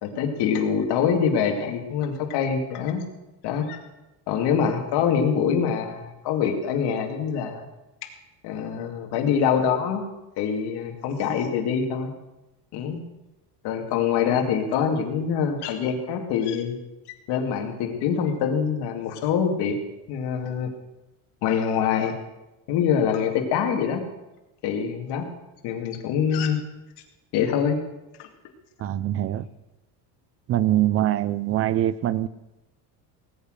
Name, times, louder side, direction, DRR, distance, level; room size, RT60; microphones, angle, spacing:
voice 1, 0.0-3.0 3.4-3.8 4.3-7.6 8.4-10.0 10.4-12.1 12.7-13.0 13.6-16.8 17.3-19.7 20.1-20.7 21.4-22.1 22.7-24.0 24.6-25.3 25.6-26.6 27.3-27.8 28.2-28.3, left 7 dB, 60° left, 3 dB, 2.4 m, -24 dB
voice 2, 28.8-29.5 30.5-32.3, right 12 dB, 35° right, 17 dB, 0.4 m, -23 dB
18.5 x 8.5 x 6.5 m, 1.0 s
cardioid pair, 155°, 45 cm